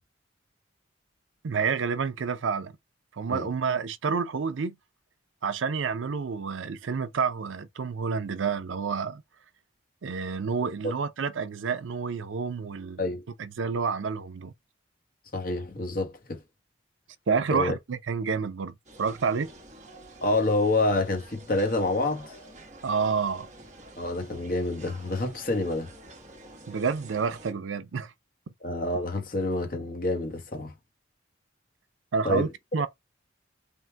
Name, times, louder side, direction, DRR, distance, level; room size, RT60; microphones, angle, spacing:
voice 1, 1.4-2.7 3.1-4.7 5.4-9.2 10.0-13.0 13.4-14.5 17.3-19.5 22.8-23.5 26.7-28.1 32.1-32.9, right 5 dB, 90° right, 0.5 m, -29 dB
voice 2, 15.3-16.4 17.5-17.7 20.2-22.4 24.0-25.9 28.6-30.7 32.2-32.5, left 2 dB, 45° left, 1.0 m, -27 dB
sound 1, 18.9-27.5, right 2 dB, 40° right, 1.0 m, -49 dB
3.7 x 2.2 x 4.3 m
head